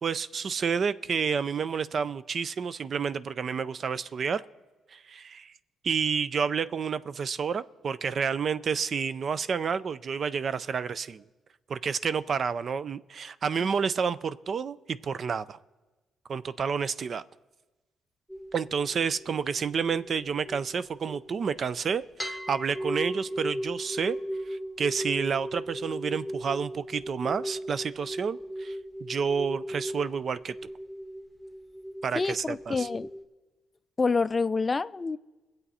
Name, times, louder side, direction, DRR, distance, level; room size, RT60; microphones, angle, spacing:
voice 1, 0.0-4.4 4.9-5.5 5.8-11.2 11.7-15.6 16.3-17.2 18.5-24.2 24.5-28.8 29.0-30.7 32.0-32.9, right 6 dB, 50° right, 0.4 m, -30 dB
sound 1, 18.3-21.7 22.2-33.2, equal, 10° right, 1.4 m, -37 dB
voice 2, 32.1-33.1 34.0-35.2, left 4 dB, 25° left, 0.3 m, -27 dB
21.5 x 7.8 x 4.2 m
cardioid pair, 90°, 0 cm